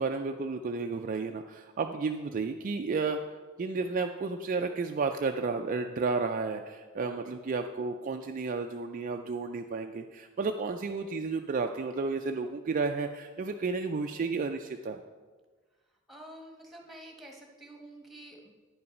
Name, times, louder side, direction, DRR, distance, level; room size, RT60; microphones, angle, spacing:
voice 1, 0.0-15.0, right 4 dB, 40° right, 5 dB, 0.3 m, -32 dB
voice 2, 16.1-18.5, right 1 dB, ahead, 1 dB, 1.3 m, -48 dB
9.9 x 5.6 x 5.3 m, 1.4 s
head